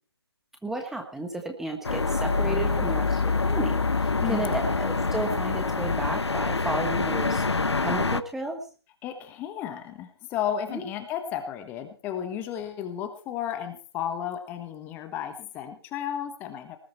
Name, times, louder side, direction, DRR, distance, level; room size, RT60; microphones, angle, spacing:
voice 1, 0.6-8.6 10.7-10.8, right 2 dB, 5° right, 3 dB, 1.4 m, -33 dB
sound 1, 1.8-8.2, left 3 dB, 80° left, 1.1 m, -26 dB
voice 2, 2.4-3.0 4.2-4.6 9.0-16.8, left 9 dB, 15° left, 8 dB, 1.4 m, -33 dB
19.5 x 12.0 x 4.4 m, 0.38 s
figure-of-eight pair, 145°, 14 cm